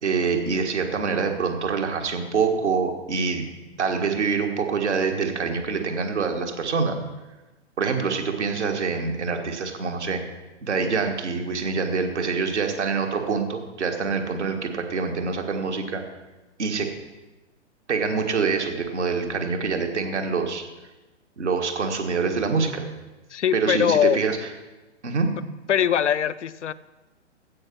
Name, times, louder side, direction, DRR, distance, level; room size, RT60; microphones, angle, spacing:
voice 1, 0.0-3.5 3.8-7.0 7.8-10.2 10.6-16.0 16.6-16.9 17.9-20.6 21.4-22.8 23.5-24.4 25.0-25.3, right 5 dB, 65° right, 4 dB, 1.6 m, -25 dB
voice 2, 23.3-24.2 25.7-26.7, left 9 dB, 70° left, 14 dB, 0.5 m, -21 dB
15.0 x 5.0 x 6.0 m, 1.1 s
figure-of-eight pair, 120°, 37 cm